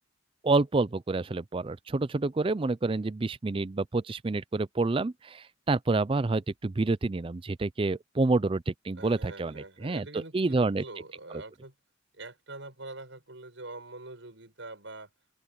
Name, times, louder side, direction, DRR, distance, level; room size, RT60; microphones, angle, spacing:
voice 1, 0.4-10.8, right 3 dB, 25° right, 0.4 m, -28 dB
voice 2, 9.0-11.8 12.1-15.1, right 2 dB, 80° right, 5.9 m, -44 dB
open air
head